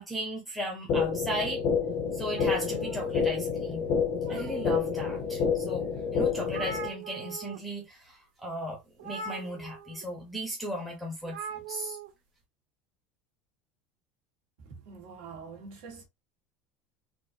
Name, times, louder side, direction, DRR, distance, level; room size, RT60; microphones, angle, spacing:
voice 1, 0.0-1.6 2.1-3.9 4.3-5.9 6.1-12.0, right 1 dB, ahead, 0.9 m, -36 dB
sound 1, 0.9-6.9, left 6 dB, 35° left, 0.7 m, -29 dB
sound 2, 2.3-3.5 4.0-4.9 5.5-5.6 6.0-6.1 6.2-7.6 7.9-8.1 9.0-10.0 11.2-12.1, right 5 dB, 85° right, 1.4 m, -42 dB
voice 2, 14.6-16.0, right 5 dB, 55° right, 1.7 m, -45 dB
4.3 x 2.5 x 2.7 m
cardioid pair, 180°, 4 cm